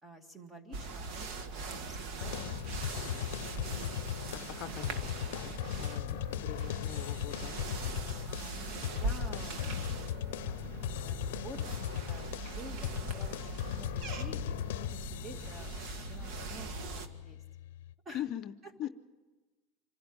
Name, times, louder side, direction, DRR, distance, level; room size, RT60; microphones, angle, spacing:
voice 1, 0.0-3.1 8.3-9.9 10.4-17.4 18.1-18.3 18.6-18.9, right 1 dB, 15° right, 7 dB, 2.1 m, -51 dB
sound 1, 0.7-17.1, right 3 dB, 55° right, 1.6 m, -41 dB
sound 2, 2.2-17.9, left 12 dB, 85° left, 0.6 m, -38 dB
voice 2, 4.3-7.6 18.1-18.5 18.8-18.9, left 12 dB, 45° left, 10 dB, 0.6 m, -42 dB
25.5 x 12.0 x 8.7 m, 1.2 s
supercardioid pair, 140°, 0 cm